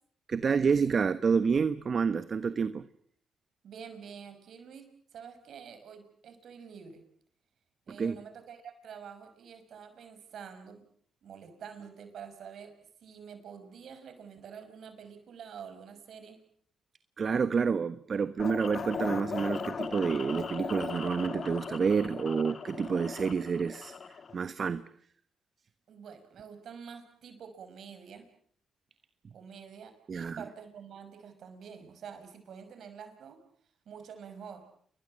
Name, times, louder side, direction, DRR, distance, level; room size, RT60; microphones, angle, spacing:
voice 1, 0.3-2.9 8.0-8.2 17.2-23.9 24.3-24.8 30.1-30.4, right 5 dB, 50° right, 13 dB, 1.2 m, -28 dB
voice 2, 3.6-7.0 7.9-10.9 11.2-12.7 13.0-16.4 25.9-28.3 29.3-33.4 33.9-34.7, right 7 dB, 65° right, 9 dB, 5.6 m, -47 dB
sound 1, 18.4-24.3, left 5 dB, 50° left, 2.5 m, -38 dB
29.5 x 22.0 x 7.6 m, 0.63 s
hypercardioid pair, 45°, 0 cm